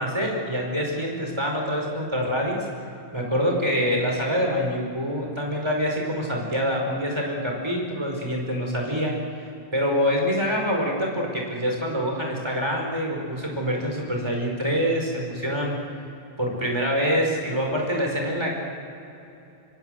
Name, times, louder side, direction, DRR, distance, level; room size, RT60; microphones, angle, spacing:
voice 1, 0.0-2.7 3.1-15.8 16.4-18.5, equal, 25° right, 0 dB, 5.3 m, -25 dB
25.0 x 25.0 x 8.0 m, 2.8 s
omnidirectional pair, 1.1 m